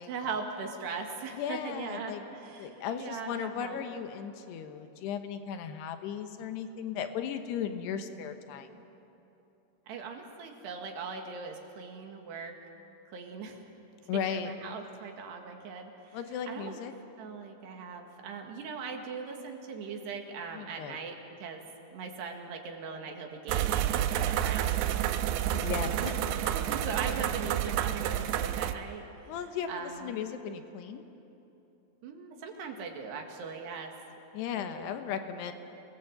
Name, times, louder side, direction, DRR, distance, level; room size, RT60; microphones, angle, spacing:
voice 1, 0.0-3.8 9.9-12.5 13.1-13.7 14.0-16.2 16.5-16.8 17.2-21.6 21.9-25.7 26.0-29.3 29.7-30.2 32.0-33.9 34.6-35.3, right 5 dB, 65° right, 3 dB, 3.7 m, -40 dB
voice 2, 1.3-2.2 2.6-8.8 14.1-14.5 16.1-16.9 20.5-21.0 25.6-26.5 29.3-31.0 34.3-35.5, left 8 dB, 70° left, 7 dB, 2.8 m, -36 dB
sound 1, 23.5-28.7, right 11 dB, 80° right, 2.6 m, -29 dB
29.0 x 19.5 x 7.9 m, 2.9 s
omnidirectional pair, 5.7 m